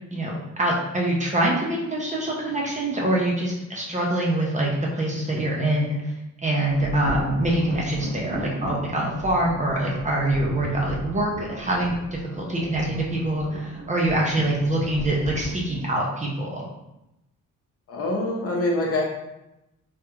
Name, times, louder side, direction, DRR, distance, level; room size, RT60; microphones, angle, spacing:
voice 1, 0.1-6.1 6.4-16.6, right 1 dB, 25° right, -2 dB, 0.5 m, -25 dB
sound 1, 6.6-15.5, equal, 60° right, 1.0 m, -36 dB
voice 2, 17.9-19.1, left 1 dB, 45° left, 0 dB, 0.6 m, -25 dB
3.3 x 2.4 x 2.8 m, 0.90 s
cardioid pair, 155°, 32 cm